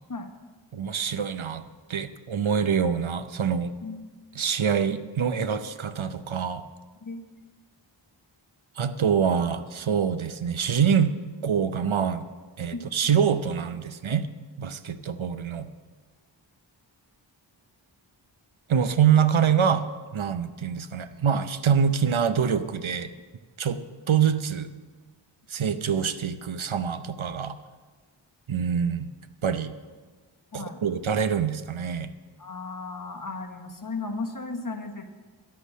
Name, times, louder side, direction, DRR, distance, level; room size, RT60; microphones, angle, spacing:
voice 1, 0.7-3.7 4.4-6.7 8.8-11.1 11.4-12.2 12.6-14.3 14.6-15.7 18.7-19.9 20.1-23.1 23.6-23.8 24.1-24.7 25.5-27.6 28.5-29.1 29.4-29.7 30.5-32.1, right 7 dB, 75° right, 11 dB, 0.7 m, -25 dB
voice 2, 32.4-35.2, left 3 dB, 40° left, 4 dB, 1.2 m, -35 dB
10.5 x 8.3 x 7.4 m, 1.4 s
wide cardioid pair, 55°, 48 cm